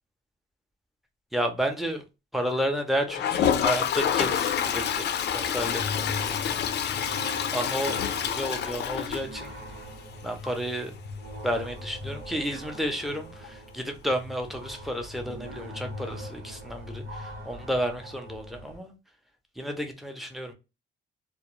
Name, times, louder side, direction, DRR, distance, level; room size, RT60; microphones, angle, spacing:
voice 1, 1.3-2.0 2.3-6.6 7.5-8.0 8.2-9.6 10.2-10.9 11.4-18.9 19.6-20.5, equal, ahead, 0.6 m, -31 dB
Toilet flush, 3.1-9.8 10.1-10.2 10.4-10.5 10.8-10.9 13.4-13.5 14.8-14.9, left 8 dB, 60° left, 0.4 m, -27 dB
sound 1, 4.0-18.8, left 1 dB, 80° right, 1.1 m, -41 dB
2.2 x 2.0 x 3.0 m
cardioid pair, 90°, 20 cm